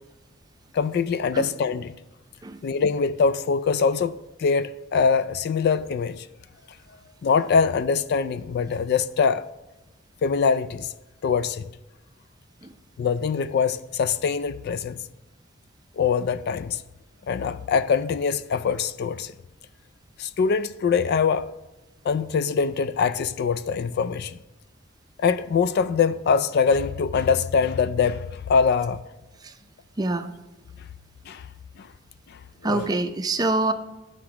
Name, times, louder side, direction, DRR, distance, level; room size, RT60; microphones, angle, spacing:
voice 1, 0.7-2.0 2.6-6.3 7.2-9.4 10.2-10.9 11.2-11.6 13.0-15.0 16.0-16.8 17.3-19.3 20.2-21.5 22.0-24.3 25.2-29.0 31.3-31.4 31.8-31.9 32.3-32.9, left 5 dB, 55° left, 0.3 m, -23 dB
voice 2, 30.0-30.3 32.6-33.7, right 2 dB, 20° right, 0.5 m, -25 dB
10.5 x 5.9 x 4.8 m
head